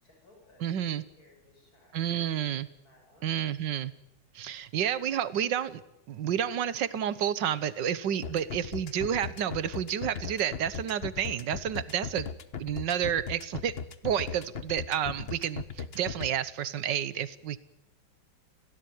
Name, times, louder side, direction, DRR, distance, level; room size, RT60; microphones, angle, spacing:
voice 1, 0.0-3.4 8.3-8.4, left 2 dB, 55° left, 0 dB, 7.9 m, -62 dB
voice 2, 0.6-1.0 1.9-2.7 3.2-3.9 4.3-5.8 6.1-12.3 12.6-13.7 14.0-17.6, right 9 dB, 75° right, 16 dB, 1.7 m, -30 dB
sound 1, 8.2-16.3, left 6 dB, 40° left, 1.2 m, -37 dB
27.5 x 17.5 x 9.4 m, 0.88 s
omnidirectional pair, 1.9 m